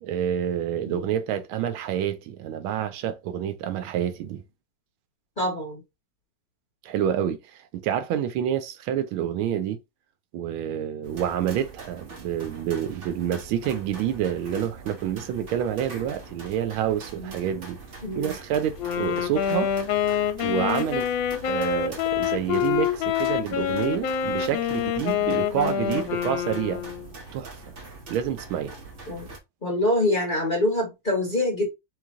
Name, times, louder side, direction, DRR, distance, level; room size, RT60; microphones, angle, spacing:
voice 1, 0.0-4.4 6.8-9.8 10.3-17.8 18.1-19.7 20.4-21.1 21.5-26.8 27.3-27.6 28.1-28.7, right 10 dB, 85° right, 1.5 m, -28 dB
voice 2, 5.4-5.8 17.2-17.3 18.0-18.3 29.1-29.3 29.6-31.7, left 1 dB, 30° left, 1.0 m, -25 dB
sound 1, 11.0-29.4, right 3 dB, 45° right, 1.1 m, -43 dB
Wind instrument woodwind instrument, 18.8-27.1, left 9 dB, 75° left, 1.3 m, -26 dB
3.4 x 3.2 x 3.5 m
omnidirectional pair, 2.2 m